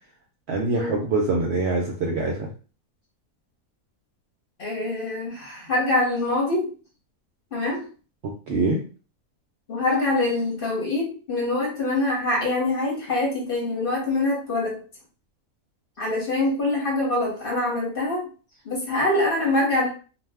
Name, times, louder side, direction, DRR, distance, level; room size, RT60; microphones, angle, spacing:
voice 1, 0.5-2.5 8.2-8.8, right 3 dB, 70° right, 0 dB, 0.6 m, -24 dB
voice 2, 4.6-6.7 7.5-7.9 9.7-14.8 16.0-18.3 18.6-19.9, left 2 dB, 45° left, -2 dB, 0.8 m, -24 dB
2.5 x 2.1 x 3.3 m, 0.36 s
omnidirectional pair, 1.5 m